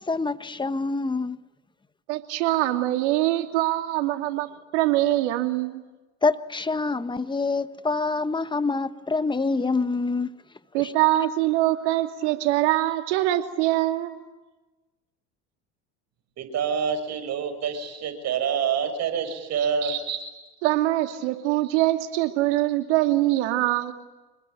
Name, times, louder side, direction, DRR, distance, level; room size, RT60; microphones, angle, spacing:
voice 1, 0.1-1.4 6.2-10.3, left 3 dB, 15° left, 1.4 m, -26 dB
voice 2, 2.1-4.5 4.7-5.8 10.7-14.2 20.6-23.9, right 16 dB, 80° right, 2.8 m, -23 dB
voice 3, 16.4-20.2 21.6-21.7, right 7 dB, 50° right, 6.3 m, -27 dB
27.0 x 21.0 x 9.3 m
hypercardioid pair, 85°, 34 cm